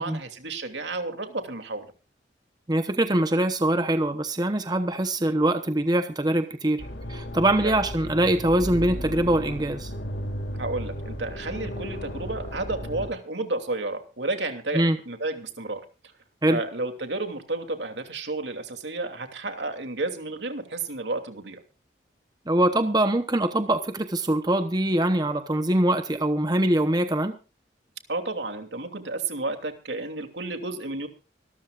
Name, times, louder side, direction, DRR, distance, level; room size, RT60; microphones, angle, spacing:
voice 1, 0.0-1.9 7.6-7.8 10.5-15.8 16.5-21.6 28.1-31.1, right 2 dB, 75° right, 5 dB, 2.9 m, -31 dB
voice 2, 2.7-6.8 7.1-9.9 14.7-15.0 16.4-16.6 22.5-27.4, right 1 dB, 20° right, 8 dB, 0.9 m, -23 dB
sound 1, 6.8-13.1, equal, 80° left, 3.1 m, -34 dB
25.5 x 13.5 x 2.5 m, 0.32 s
head